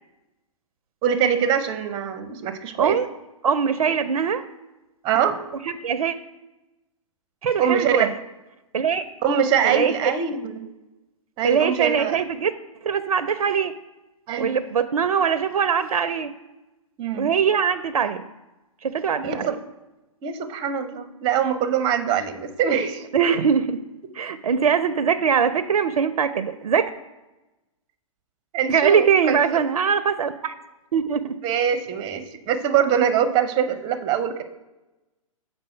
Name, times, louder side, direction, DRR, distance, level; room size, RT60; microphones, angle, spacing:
voice 1, 1.0-3.0 5.0-5.4 7.6-8.1 9.2-10.6 11.4-12.2 14.3-14.6 17.0-17.3 19.2-19.6 20.2-23.3 24.5-24.6 28.5-29.4 31.4-34.4, right 8 dB, 25° right, 10 dB, 0.7 m, -23 dB
voice 2, 3.4-4.4 5.7-6.1 7.4-8.1 8.7-9.0 9.6-10.1 11.4-12.5 12.8-13.7 14.4-16.3 17.1-18.2 18.8-19.5 23.1-23.8 24.1-26.9 28.7-30.5 30.9-31.4, right 7 dB, 85° right, 12 dB, 0.4 m, -22 dB
7.5 x 4.3 x 4.4 m, 1.0 s
hypercardioid pair, 130°, 18 cm